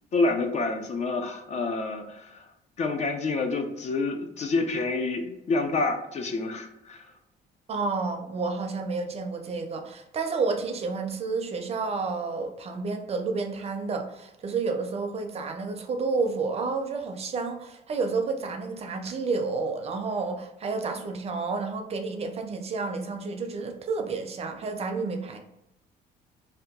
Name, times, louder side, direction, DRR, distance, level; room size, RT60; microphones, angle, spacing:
voice 1, 0.1-2.5 2.8-7.1, left 3 dB, 40° left, 6 dB, 0.5 m, -28 dB
voice 2, 7.7-25.4, right 4 dB, 35° right, 4 dB, 0.5 m, -30 dB
2.8 x 2.2 x 3.5 m, 0.86 s
cardioid pair, 110°, 17 cm